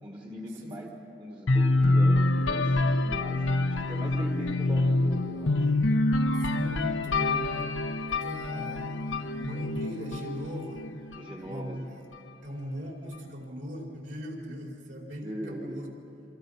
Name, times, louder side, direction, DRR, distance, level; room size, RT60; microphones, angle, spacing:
voice 1, 0.0-5.7 11.1-11.8 15.2-15.8, equal, 25° right, 0 dB, 1.6 m, -40 dB
sound 1, 1.5-11.3, left 2 dB, 85° left, 1.1 m, -26 dB
voice 2, 6.3-7.7 8.1-10.9 11.4-12.0 12.4-15.9, equal, 60° right, -1 dB, 4.9 m, -39 dB
27.0 x 26.5 x 5.7 m, 2.8 s
head